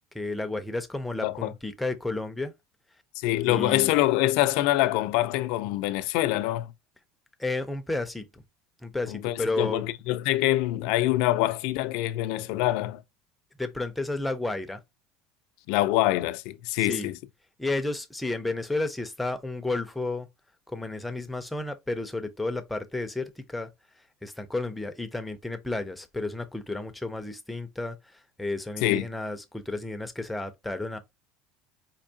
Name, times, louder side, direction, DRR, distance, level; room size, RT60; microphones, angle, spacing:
voice 1, 0.1-2.5 3.4-3.9 7.4-8.4 8.8-9.8 13.6-14.8 16.8-17.1 17.6-20.3 20.7-23.7 24.2-31.0, left 2 dB, 5° left, 0.4 m, -32 dB
voice 2, 3.2-6.7 9.1-13.0 15.7-17.2 28.8-29.1, left 16 dB, 65° left, 0.4 m, -25 dB
4.4 x 2.7 x 2.7 m
cardioid pair, 165°, 0 cm